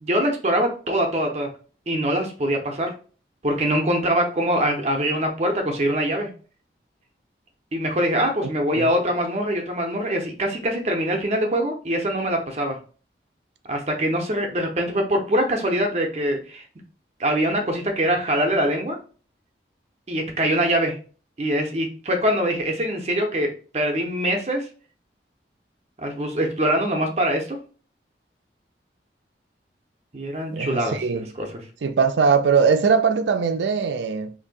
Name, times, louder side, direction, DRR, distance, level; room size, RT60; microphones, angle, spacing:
voice 1, 0.0-1.5 1.9-2.9 3.4-6.3 7.7-12.8 13.7-16.6 17.2-19.0 20.1-21.0 21.4-23.5 23.7-24.6 26.0-27.6 30.1-31.5, equal, 35° right, 0.6 m, -23 dB
voice 2, 30.5-31.3 31.8-34.3, right 5 dB, 90° right, 0.4 m, -21 dB
2.6 x 2.6 x 3.8 m
head